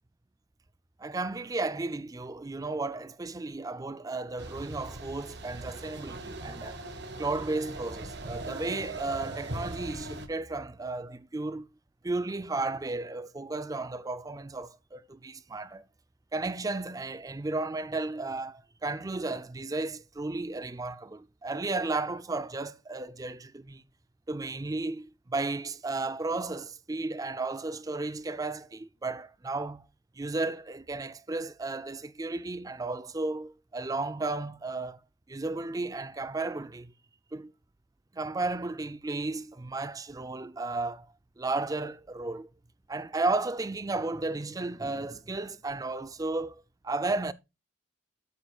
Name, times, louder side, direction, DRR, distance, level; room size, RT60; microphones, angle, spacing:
voice 1, 1.0-6.8 7.2-11.7 12.0-15.8 16.3-23.8 24.3-29.8 30.2-35.0 35.3-36.9 37.3-37.5 38.1-42.5 42.9-47.3, right 3 dB, 15° right, 0.4 m, -34 dB
sound 1, 4.4-10.3, right 2 dB, 55° right, 1.2 m, -40 dB
13.0 x 7.1 x 2.3 m
head